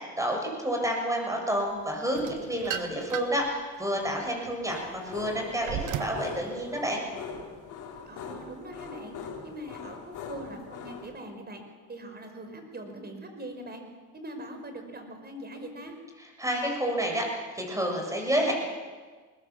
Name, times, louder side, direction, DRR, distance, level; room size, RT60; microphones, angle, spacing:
voice 1, 0.2-7.1 16.4-18.5, equal, 10° right, 1 dB, 7.3 m, -29 dB
sound 1, 2.1-3.5 4.0-6.3, right 9 dB, 90° right, 1.4 m, -36 dB
sound 2, 4.7-11.1, left 6 dB, 90° left, 3.5 m, -42 dB
voice 2, 8.0-11.6 11.9-13.8 14.1-16.0, right 1 dB, 35° right, 5 dB, 5.0 m, -42 dB
21.5 x 20.0 x 7.4 m, 1.4 s
cardioid pair, 90°, 30 cm